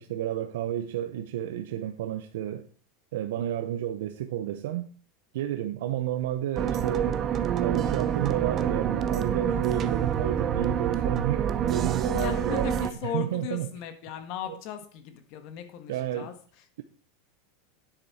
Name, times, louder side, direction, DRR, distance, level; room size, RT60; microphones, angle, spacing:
voice 1, 0.0-2.7 3.1-4.9 5.3-7.2 7.6-13.7 14.5-14.6 15.9-16.3, right 11 dB, 75° right, 0.7 m, -31 dB
sound 1, 6.6-12.9, right 9 dB, 25° right, 0.6 m, -27 dB
voice 2, 12.1-16.3, left 9 dB, 45° left, 1.6 m, -37 dB
9.9 x 8.3 x 4.2 m
supercardioid pair, 160°, 0 cm